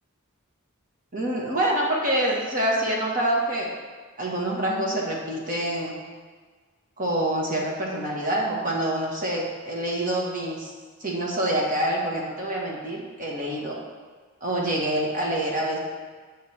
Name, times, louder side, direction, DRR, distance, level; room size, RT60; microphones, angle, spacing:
voice 1, 1.1-3.7 4.2-6.0 7.0-10.7 11.0-13.8 14.4-15.8, right 1 dB, 40° right, -2 dB, 1.6 m, -26 dB
8.6 x 6.2 x 4.3 m, 1.5 s
head